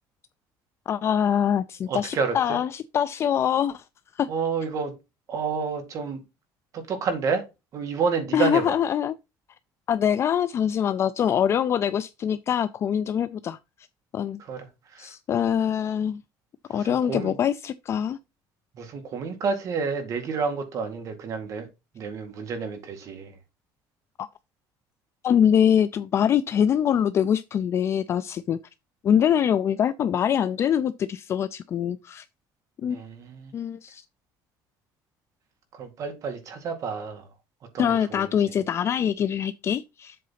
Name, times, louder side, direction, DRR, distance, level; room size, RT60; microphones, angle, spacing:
voice 1, 0.9-3.8 4.1-4.3 8.3-9.2 9.9-13.6 14.1-14.4 15.0-16.2 16.7-18.2 25.2-28.6 29.0-32.2 32.8-33.0 33.5-34.0 37.8-40.2, left 9 dB, 35° left, 0.3 m, -24 dB
voice 2, 1.9-2.6 4.3-4.9 5.3-6.2 6.7-7.4 7.7-8.8 14.4-14.7 14.9-15.1 16.7-17.4 18.8-21.7 21.9-23.3 32.9-33.5 35.8-37.2 37.7-38.3, right 5 dB, 40° right, 2.0 m, -29 dB
7.6 x 3.9 x 5.7 m
cardioid pair, 160°, 8 cm